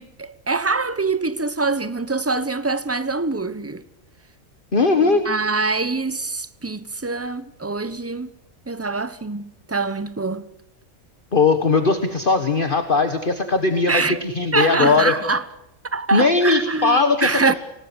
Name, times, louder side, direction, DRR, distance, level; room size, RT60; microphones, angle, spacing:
voice 1, 0.0-3.8 5.0-8.3 8.7-10.5 13.9-14.2 14.5-15.4 15.9-17.5, right 3 dB, 15° right, 0.7 m, -24 dB
voice 2, 4.7-5.2 11.3-15.1 16.1-17.3, left 4 dB, 40° left, 1.6 m, -19 dB
25.5 x 18.5 x 8.1 m
omnidirectional pair, 1.5 m